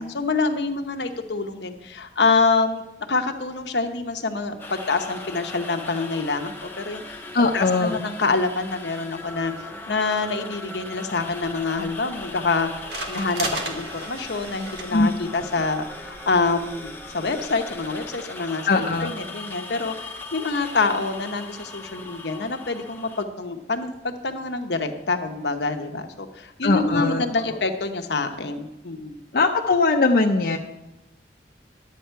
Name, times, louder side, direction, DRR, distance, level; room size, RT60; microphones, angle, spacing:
voice 1, 0.0-2.8 3.1-7.3 7.5-9.5 9.9-12.7 13.1-29.2, left 3 dB, 80° left, 5 dB, 1.0 m, -26 dB
sound 1, 4.6-23.2, left 2 dB, 10° left, 0.8 m, -39 dB
voice 2, 7.3-8.0 14.9-15.1 18.7-19.2 26.6-27.2 27.5-27.6 29.3-30.6, left 3 dB, 55° left, 1 dB, 0.6 m, -20 dB
sound 2, 11.3-18.1, right 2 dB, 75° right, 1.5 m, -38 dB
11.5 x 8.4 x 4.5 m, 0.96 s
head